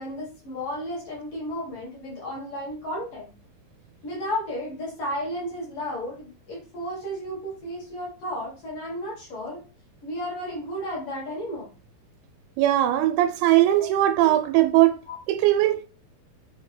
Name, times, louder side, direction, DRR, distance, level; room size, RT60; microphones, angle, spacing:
voice 1, 0.0-3.3 4.0-9.6 10.0-11.7 13.8-13.9 14.2-14.4 15.0-15.2, equal, 55° left, 1.6 m, -33 dB
voice 2, 12.6-14.9 15.3-15.9, right 14 dB, 90° right, 2.5 m, -20 dB
5.7 x 2.8 x 3.2 m
omnidirectional pair, 4.4 m